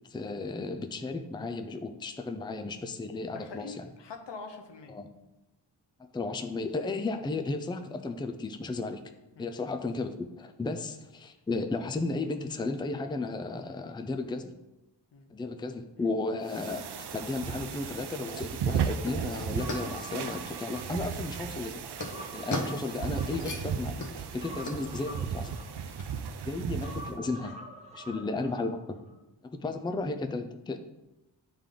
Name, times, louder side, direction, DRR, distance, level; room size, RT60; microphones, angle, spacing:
voice 1, 0.1-3.8 4.9-5.1 6.1-9.0 9.4-14.5 15.3-21.8 22.3-25.6 26.5-27.6 27.9-29.0 29.4-30.8, left 3 dB, 10° left, 7 dB, 0.4 m, -34 dB
voice 2, 3.3-5.0 9.4-9.5 15.1-15.3 15.6-16.1 26.3-26.4, left 4 dB, 75° left, 5 dB, 0.9 m, -45 dB
sound 1, 16.5-27.2, right 7 dB, 65° right, 0.6 m, -35 dB
sound 2, 17.0-26.2, left 2 dB, 45° left, 1.0 m, -41 dB
Human voice, 19.6-21.4 21.7-23.7 24.4-26.2 26.8-28.7 29.0-29.1, equal, 15° right, 1.3 m, -46 dB
8.9 x 3.4 x 3.8 m, 0.97 s
cardioid pair, 70°, 43 cm